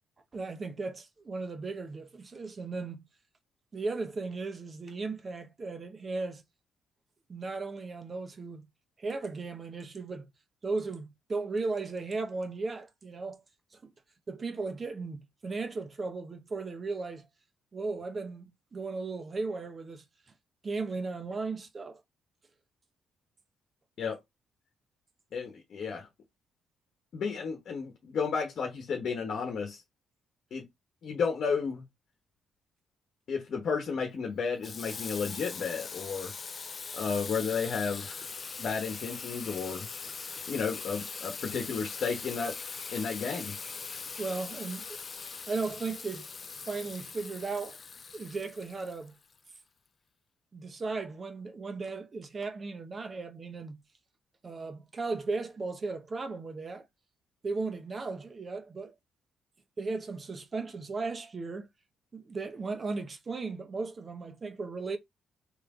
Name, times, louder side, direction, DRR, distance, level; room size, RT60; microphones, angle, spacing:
voice 1, 0.3-3.1 3.7-6.4 7.3-8.7 9.0-10.3 10.6-13.4 13.8-13.9 14.3-17.3 17.7-20.0 20.6-22.0 44.2-45.0 45.5-46.3 46.7-47.8 48.1-49.1 50.5-53.8 54.4-56.8 57.4-58.9 59.8-61.7 62.1-65.0, right 3 dB, 35° right, 0.9 m, -36 dB
voice 2, 25.3-26.1 27.1-29.8 30.5-30.6 31.0-31.8 33.3-36.3 36.9-38.2 38.6-39.9 40.5-42.6 42.9-43.5, left 5 dB, 60° left, 1.1 m, -32 dB
Water tap faucet / Sink (filling or washing), 34.6-49.4, left 5 dB, 40° left, 0.4 m, -41 dB
3.3 x 3.1 x 3.6 m
cardioid pair, 90°, 0 cm